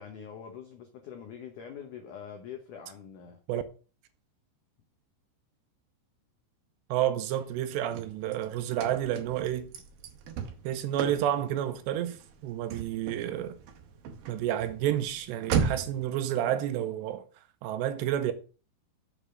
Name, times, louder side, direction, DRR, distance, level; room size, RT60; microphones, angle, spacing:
voice 1, 0.0-3.4, left 7 dB, 85° left, 1.8 m, -44 dB
voice 2, 6.9-9.7 10.6-13.6 14.3-17.3 17.6-18.3, right 11 dB, 85° right, 2.7 m, -30 dB
Car / Slam, 7.4-16.1, right 7 dB, 65° right, 2.4 m, -37 dB
7.4 x 5.1 x 6.5 m
omnidirectional pair, 5.2 m